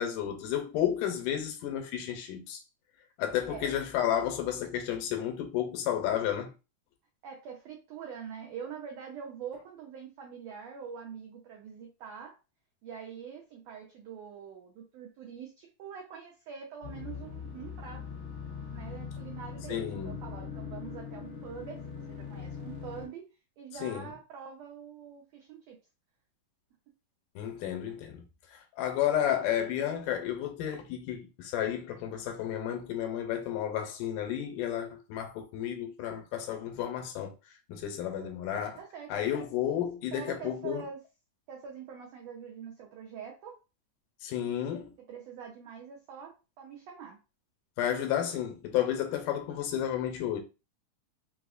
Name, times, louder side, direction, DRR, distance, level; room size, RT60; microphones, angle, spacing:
voice 1, 0.0-2.6 3.2-6.5 19.7-20.1 23.8-24.1 27.4-28.2 28.8-37.3 37.7-38.8 39.1-40.8 44.2-44.9 47.8-50.4, left 10 dB, 85° left, 2.2 m, -32 dB
voice 2, 3.5-3.9 7.2-12.4 12.8-18.0 18.7-23.2 23.6-25.8 27.7-27.8 38.2-38.3 38.7-39.4 40.1-41.0 41.5-43.5 45.1-47.2, right 7 dB, 80° right, 1.5 m, -44 dB
sound 1, 16.8-23.1, left 6 dB, 60° left, 1.4 m, -41 dB
5.1 x 2.0 x 2.4 m
omnidirectional pair, 3.7 m